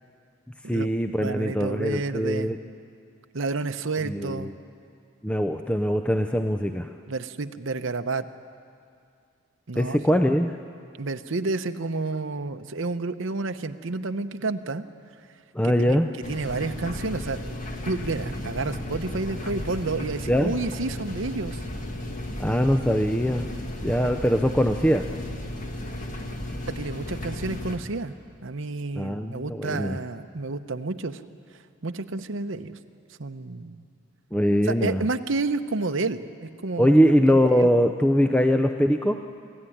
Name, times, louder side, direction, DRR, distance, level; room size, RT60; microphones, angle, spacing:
voice 1, 0.7-2.6 4.0-4.5 5.2-6.9 9.8-10.6 15.5-16.1 20.3-20.5 22.4-23.5 23.8-25.1 29.0-30.0 34.3-35.1 36.8-39.2, equal, 5° left, 6 dB, 0.5 m, -22 dB
voice 2, 1.2-2.6 3.3-4.5 7.1-8.3 9.7-10.0 11.0-14.8 15.6-16.0 16.3-17.6 17.8-21.6 26.7-28.1 28.4-31.2 31.8-32.8 33.2-33.8 34.7-37.0 37.6-37.7, right 3 dB, 65° right, 9 dB, 0.8 m, -30 dB
sound 1, 16.2-27.8, left 1 dB, 35° left, 1.8 m, -34 dB
25.5 x 14.5 x 10.0 m, 2.4 s
head